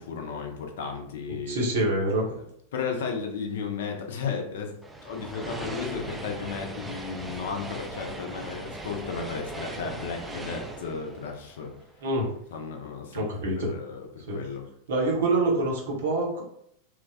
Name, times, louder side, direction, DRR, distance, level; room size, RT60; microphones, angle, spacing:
voice 1, 0.0-1.6 2.3-2.5 2.7-4.8 5.0-11.7 12.5-13.3 13.5-14.7, left 5 dB, 60° left, 3 dB, 0.4 m, -34 dB
voice 2, 1.3-2.3 12.0-12.3 13.1-13.7 14.3-14.4 14.9-16.4, right 2 dB, 60° right, -1 dB, 0.8 m, -26 dB
sound 1, 4.8-12.2, right 2 dB, 10° right, 0.3 m, -39 dB
3.1 x 2.1 x 2.4 m, 0.71 s
figure-of-eight pair, 90°, 0 cm